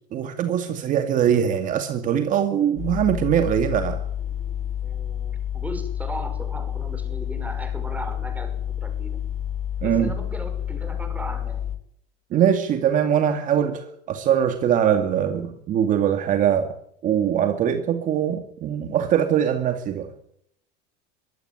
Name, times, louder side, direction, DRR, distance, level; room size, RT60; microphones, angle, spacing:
voice 1, 0.1-4.0 9.8-10.1 12.3-16.8 17.0-20.1, right 9 dB, 40° right, 7 dB, 2.4 m, -22 dB
sound 1, 2.8-11.8, left 10 dB, 35° left, 2.8 m, -29 dB
voice 2, 4.8-9.2 9.8-11.6, right 1 dB, 5° right, 8 dB, 5.5 m, -37 dB
23.0 x 16.5 x 9.2 m, 0.70 s
cardioid pair, 145°, 20 cm